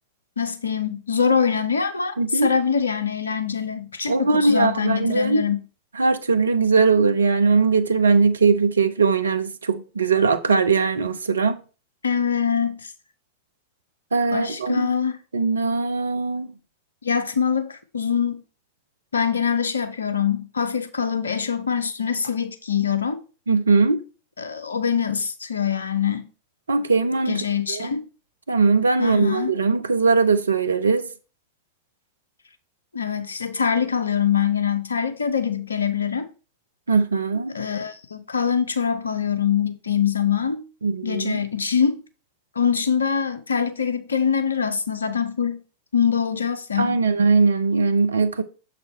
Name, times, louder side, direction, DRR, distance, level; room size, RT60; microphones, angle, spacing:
voice 1, 0.4-5.6 12.0-12.9 14.3-15.2 17.0-18.4 19.1-23.2 24.4-26.2 27.3-28.1 29.0-29.5 32.9-36.3 37.5-40.6 41.0-42.0 42.6-45.6 45.9-47.0, left 7 dB, 75° left, 0.6 m, -24 dB
voice 2, 2.2-2.5 4.1-5.4 6.0-11.6 14.1-14.9 15.3-16.5 23.5-24.0 26.7-27.4 27.7-27.9 28.5-31.1 36.9-37.6 40.8-41.4 46.8-48.4, right 4 dB, 75° right, 0.6 m, -20 dB
6.8 x 4.2 x 4.3 m
figure-of-eight pair, 90°, 0 cm